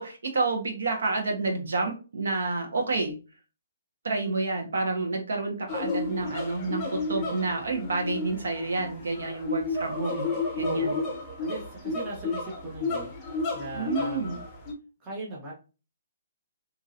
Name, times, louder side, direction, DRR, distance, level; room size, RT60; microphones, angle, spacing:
voice 1, 0.0-3.1 4.0-10.3 10.6-11.0 13.7-14.3, right 3 dB, 80° right, 2 dB, 1.1 m, -29 dB
sound 1, 5.7-14.7, left 3 dB, 20° left, 0.7 m, -32 dB
voice 2, 10.6-14.4 15.0-15.5, right 2 dB, 20° right, -5 dB, 0.8 m, -38 dB
2.8 x 2.7 x 2.5 m, 0.33 s
hypercardioid pair, 160°, 0 cm